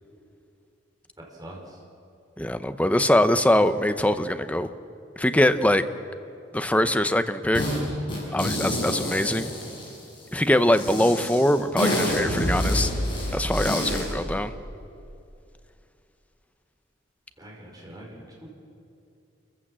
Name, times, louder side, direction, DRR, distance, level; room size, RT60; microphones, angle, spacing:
voice 1, 1.4-1.8 17.4-18.5, right 1 dB, 20° right, -2 dB, 4.7 m, -43 dB
voice 2, 2.4-4.7 5.2-5.8 6.5-7.6 8.3-9.5 10.3-12.9 13.3-14.5, left 1 dB, 5° left, 10 dB, 0.7 m, -22 dB
sound 1, 7.5-7.8 8.1-10.2 10.7-14.1, left 1 dB, 25° left, 7.3 m, -29 dB
sound 2, 11.7-15.0, equal, 50° left, 6.1 m, -30 dB
28.5 x 15.0 x 7.6 m, 2.6 s
head